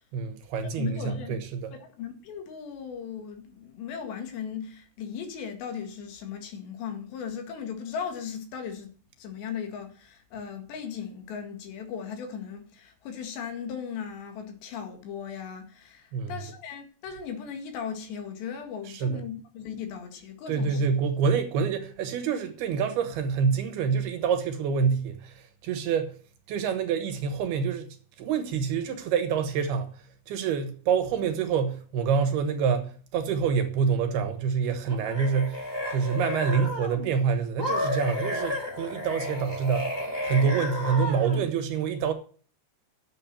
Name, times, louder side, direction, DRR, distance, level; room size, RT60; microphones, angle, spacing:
voice 1, 0.1-1.8 16.1-16.3 18.9-19.2 20.5-26.2 26.5-39.9 40.2-42.1, right 6 dB, 70° right, 3.1 m, -27 dB
voice 2, 0.8-1.4 1.7-8.9 9.2-20.9, left 7 dB, 75° left, 4.0 m, -37 dB
sound 1, 34.9-37.1 37.6-41.5, left 1 dB, 5° left, 2.8 m, -32 dB
10.5 x 7.7 x 7.3 m
omnidirectional pair, 5.1 m